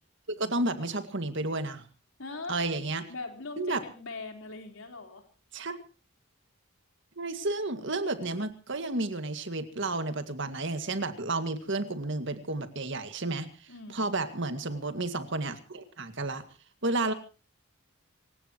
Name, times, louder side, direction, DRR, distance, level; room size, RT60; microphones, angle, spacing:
voice 1, 0.4-1.8 2.5-3.1 3.6-3.8 5.5-5.8 7.2-13.5 13.9-16.4 16.8-17.1, right 2 dB, 55° right, 9 dB, 2.0 m, -31 dB
voice 2, 2.2-2.6 3.1-5.2 13.7-14.1, left 3 dB, 65° left, 5 dB, 4.1 m, -41 dB
27.0 x 16.5 x 3.0 m, 0.35 s
head